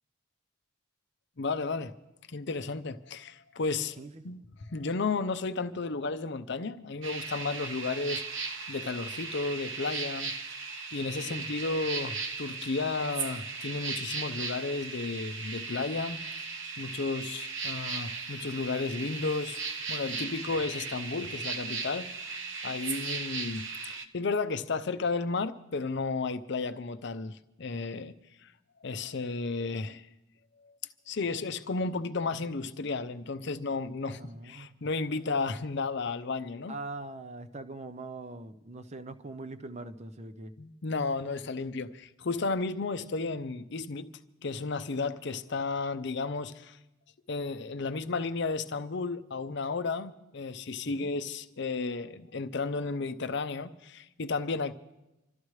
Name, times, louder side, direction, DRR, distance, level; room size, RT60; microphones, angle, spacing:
voice 1, 1.4-1.9 2.3-4.0 4.2-4.4 4.7-8.2 8.7-10.3 10.9-16.2 16.8-19.6 19.9-22.1 22.6-28.1 28.4-28.5 28.8-30.0 30.6-30.7 31.1-36.8 40.6-44.1 44.4-46.8 47.3-54.7, left 3 dB, 55° left, 0.6 m, -33 dB
voice 2, 4.0-4.3 11.0-11.5 34.0-34.7 36.7-40.5 50.8-51.1, right 2 dB, 35° right, 0.6 m, -42 dB
sound 1, 7.0-24.0, right 4 dB, 70° right, 0.9 m, -37 dB
27.0 x 13.0 x 3.2 m
head